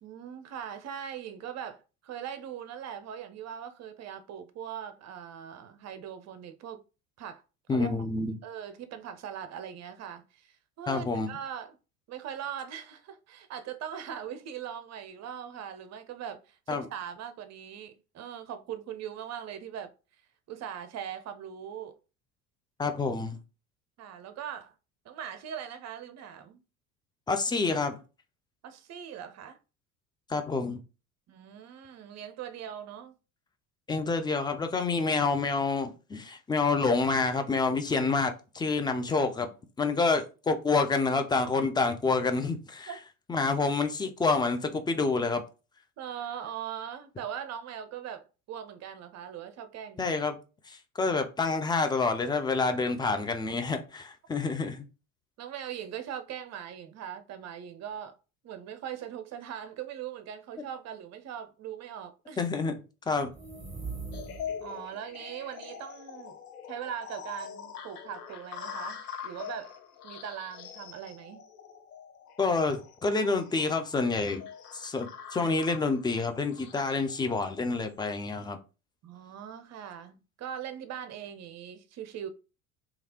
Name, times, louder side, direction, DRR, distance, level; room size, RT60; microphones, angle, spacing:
voice 1, 0.0-6.8 7.2-7.4 7.7-8.0 8.4-11.8 12.1-19.9 20.5-21.9 24.0-24.7 25.0-26.6 28.6-29.6 31.3-33.1 42.9-43.0 46.0-50.1 55.4-58.2 58.4-62.4 64.6-66.4 66.7-69.8 70.0-71.4 79.0-82.3, right 9 dB, 35° right, 0.7 m, -40 dB
voice 2, 7.7-8.4 10.9-11.3 16.7-16.9 22.8-23.4 27.3-28.0 30.3-30.8 33.9-39.5 39.8-42.9 43.3-45.4 50.0-50.4 50.7-54.8 62.4-62.7 63.1-63.3 72.4-74.4 74.7-78.6, left 4 dB, 10° left, 0.4 m, -28 dB
sound 1, 63.2-64.8, right 4 dB, 10° right, 1.8 m, -40 dB
sound 2, 64.1-78.4, left 8 dB, 90° left, 0.6 m, -44 dB
3.1 x 2.4 x 2.9 m
hypercardioid pair, 70°, 44 cm